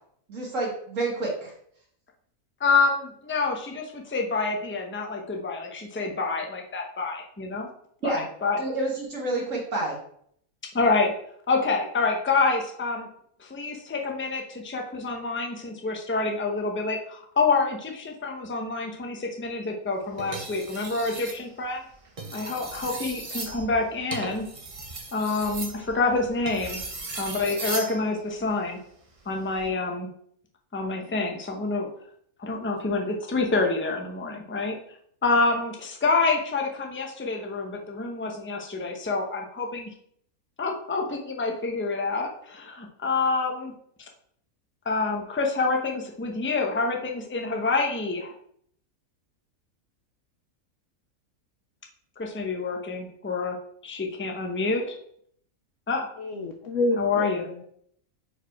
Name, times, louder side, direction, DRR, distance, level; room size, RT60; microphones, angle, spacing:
voice 1, 0.3-1.5 8.0-8.3 8.6-10.0, right 2 dB, 60° right, -3 dB, 1.6 m, -29 dB
voice 2, 2.6-7.7 8.0-8.6 10.7-11.1 11.5-13.1 13.4-21.8 22.3-24.5 25.1-26.8 27.1-28.8 29.3-30.1 30.7-31.9 32.4-34.8 35.2-39.9 40.6-43.7 44.8-48.3 52.2-53.6 53.8-54.9 55.9-56.1 57.0-57.4, left 3 dB, 15° left, 1 dB, 0.5 m, -27 dB
sound 1, 20.2-21.4 22.1-28.0 29.4-29.7, right 2 dB, 30° right, 0.7 m, -36 dB
voice 3, 56.2-57.6, left 2 dB, 65° left, 3 dB, 0.9 m, -28 dB
4.8 x 4.5 x 4.6 m, 0.66 s
omnidirectional pair, 1.6 m